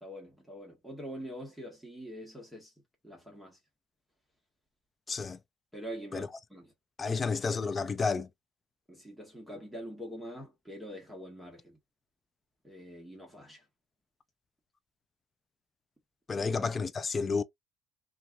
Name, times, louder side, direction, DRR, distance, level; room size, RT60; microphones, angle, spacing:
voice 1, 0.0-2.7 3.0-3.6 5.7-6.7 7.0-7.4 8.9-11.8 12.6-13.6 16.3-16.5, equal, 5° right, 1.2 m, -44 dB
voice 2, 5.1-5.4 6.1-6.3 7.0-8.3 16.3-17.4, left 4 dB, 25° left, 0.3 m, -31 dB
2.8 x 2.4 x 2.2 m
cardioid pair, 110°, 0 cm